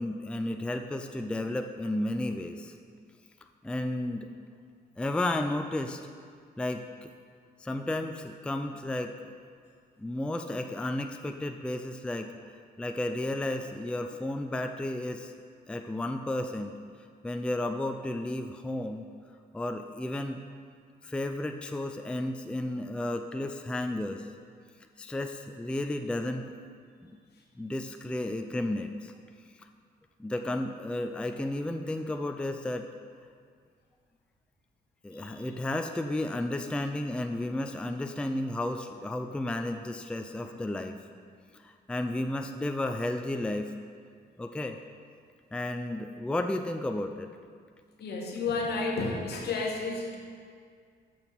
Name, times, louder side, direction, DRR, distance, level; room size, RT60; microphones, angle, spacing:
voice 1, 0.0-2.7 3.6-4.3 5.0-6.0 6.6-7.1 7.6-9.1 10.0-15.3 15.7-16.7 17.2-19.0 19.5-20.4 21.0-24.3 25.0-26.5 27.6-29.1 30.2-32.9 35.0-41.0 41.5-43.7 44.4-44.8 45.5-47.3, left 1 dB, 5° left, 6 dB, 0.4 m, -33 dB
voice 2, 35.1-35.5 48.0-50.2, left 3 dB, 70° left, 0 dB, 1.4 m, -32 dB
6.8 x 6.2 x 5.7 m, 2.1 s
cardioid pair, 95°, 17 cm